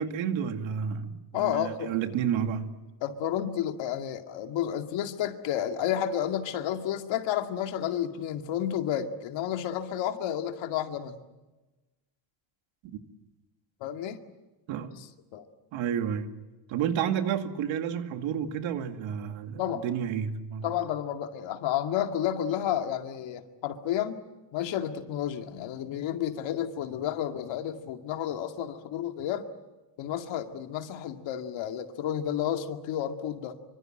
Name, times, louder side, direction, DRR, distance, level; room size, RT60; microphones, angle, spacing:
voice 1, 0.0-2.7 12.8-13.0 14.7-14.9 15.7-16.3 16.7-20.7, right 8 dB, 75° right, 2.4 m, -30 dB
voice 2, 1.3-2.0 3.0-11.2 13.8-14.2 15.3-15.5 19.6-19.8 20.6-24.2 24.5-29.4 30.0-33.6, left 10 dB, 70° left, 2.3 m, -31 dB
26.0 x 24.5 x 7.8 m
cardioid pair, 160°, 47 cm